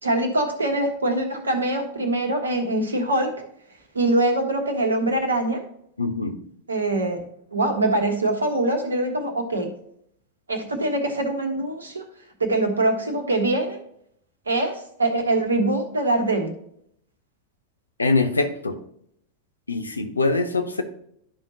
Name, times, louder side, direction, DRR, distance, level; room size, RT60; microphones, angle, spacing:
voice 1, 0.0-3.3 3.9-5.6 6.7-7.2 7.5-9.7 10.5-12.0 12.4-13.8 14.5-16.5, right 2 dB, 75° right, 5 dB, 1.4 m, -23 dB
voice 2, 6.0-6.4 18.0-18.8 19.7-20.8, left 3 dB, 80° left, 7 dB, 0.9 m, -23 dB
11.5 x 5.4 x 2.8 m, 0.70 s
figure-of-eight pair, 90°, 0 cm